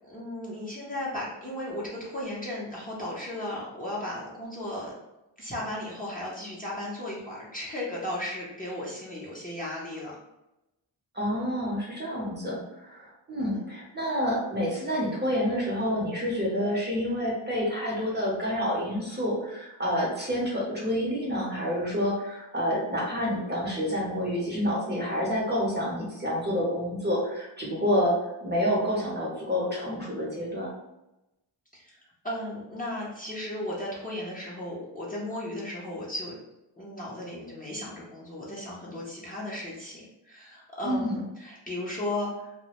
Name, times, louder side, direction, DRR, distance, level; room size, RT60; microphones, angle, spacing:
voice 1, 0.0-4.9 5.4-10.2 13.4-13.6 31.7-32.0 32.2-36.4 36.8-42.5, left 1 dB, 20° left, -7 dB, 0.6 m, -35 dB
voice 2, 11.1-28.1 28.4-30.7 40.8-41.2, equal, 20° right, -4 dB, 0.7 m, -28 dB
2.1 x 2.0 x 2.9 m, 0.94 s
wide cardioid pair, 80°, 47 cm